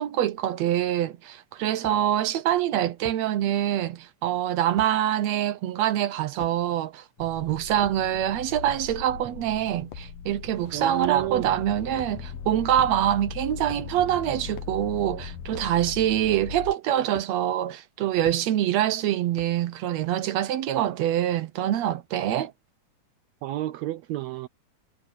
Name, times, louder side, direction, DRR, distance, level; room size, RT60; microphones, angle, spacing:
voice 1, 0.0-22.5, right 11 dB, 70° right, 1.8 m, -25 dB
sound 1, 0.8-0.9 1.8-2.0 3.0-3.2 4.8-4.9 6.4-6.6 7.6-8.2 8.6-8.9 9.9-10.1 11.0-11.4 11.9-12.2 12.8-13.2 13.6-13.9 14.5-14.8 15.5-15.8 17.1-17.3 18.2-18.4 19.4-19.7, left 12 dB, 70° left, 2.5 m, -44 dB
sound 2, 7.2-16.7, left 7 dB, 55° left, 2.0 m, -39 dB
voice 2, 10.7-11.6 23.4-24.5, right 15 dB, 90° right, 1.5 m, -31 dB
omnidirectional pair, 3.8 m